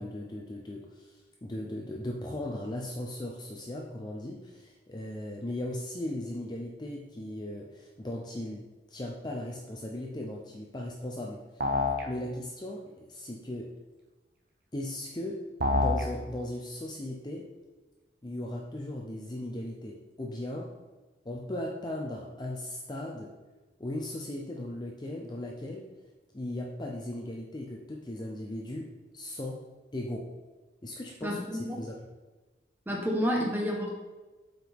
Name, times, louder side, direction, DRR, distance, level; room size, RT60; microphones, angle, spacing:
voice 1, 0.0-11.6 12.0-13.8 14.7-15.4 15.7-17.5 18.2-20.7 21.2-23.3 23.8-25.9 26.3-29.6 29.9-30.3 30.8-32.0, left 1 dB, 25° left, -1 dB, 0.5 m, -37 dB
sound 1, 11.6-12.1 15.6-16.1, left 3 dB, 55° right, 1.0 m, -26 dB
voice 2, 31.2-31.8 32.9-33.9, equal, 10° right, -2 dB, 1.2 m, -29 dB
7.7 x 4.6 x 3.5 m, 1.2 s
head